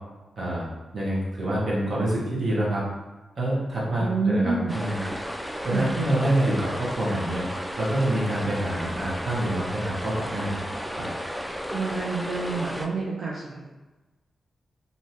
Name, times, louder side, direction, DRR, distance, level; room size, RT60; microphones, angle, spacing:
voice 1, 0.9-2.8 3.4-5.0 5.6-7.4 7.8-10.6 10.9-11.1, right 1 dB, 55° right, -6 dB, 1.2 m, -26 dB
voice 2, 4.0-4.8 5.7-5.9 11.7-13.7, right 3 dB, 75° right, -4 dB, 0.5 m, -28 dB
sound 1, 4.7-12.9, equal, ahead, 0.3 m, -33 dB
3.1 x 2.7 x 2.8 m, 1.2 s
cardioid pair, 85°, 0 cm